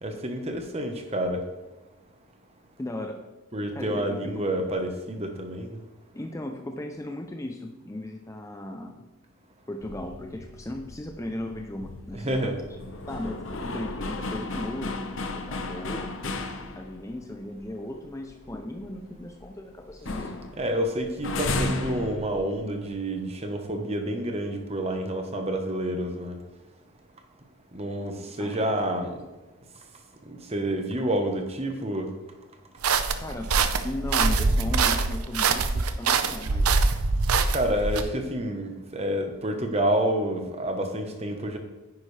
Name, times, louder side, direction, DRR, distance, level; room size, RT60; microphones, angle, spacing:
voice 1, 0.0-1.4 3.5-5.8 12.2-12.6 20.6-26.4 27.7-29.2 30.3-32.1 37.5-41.6, right 1 dB, 25° right, 4 dB, 1.1 m, -28 dB
voice 2, 2.8-3.2 3.7-4.5 6.1-9.1 9.7-12.8 13.1-16.4 16.8-20.5 28.3-28.8 33.2-36.8, left 1 dB, 15° left, 4 dB, 0.5 m, -37 dB
sound 1, 9.8-17.1 17.6-17.7 18.0-19.6 19.9-22.9, left 2 dB, 60° left, 0.9 m, -34 dB
sound 2, 32.8-38.0, right 4 dB, 80° right, 0.7 m, -24 dB
10.0 x 9.6 x 3.3 m, 1.1 s
head